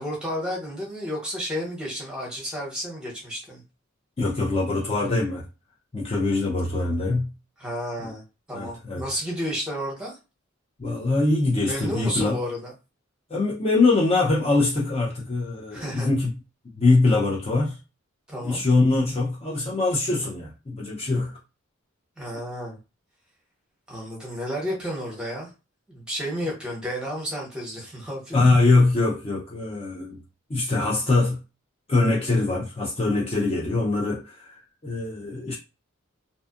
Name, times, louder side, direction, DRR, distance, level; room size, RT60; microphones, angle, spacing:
voice 1, 0.0-3.6 7.6-10.2 11.6-12.7 15.7-16.1 18.3-18.6 22.2-22.8 23.9-25.5 25.9-28.4, equal, 5° right, 0.9 m, -32 dB
voice 2, 4.2-5.5 5.9-7.3 8.0-8.1 8.5-9.0 10.8-12.4 13.3-16.4 16.7-17.8 18.4-21.4 28.3-30.2 30.5-31.4 31.9-35.5, left 3 dB, 30° left, 0.4 m, -23 dB
2.5 x 2.3 x 2.4 m
head